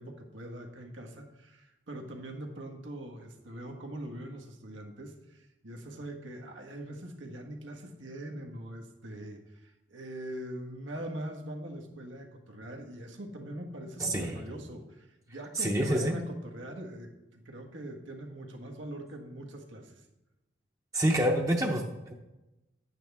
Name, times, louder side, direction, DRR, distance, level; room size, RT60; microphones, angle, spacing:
voice 1, 0.0-20.0, right 1 dB, 90° right, 2 dB, 1.5 m, -42 dB
voice 2, 14.0-14.4 15.6-16.1 20.9-22.1, right 1 dB, 15° right, 1 dB, 0.7 m, -27 dB
11.0 x 9.0 x 3.5 m, 0.99 s
head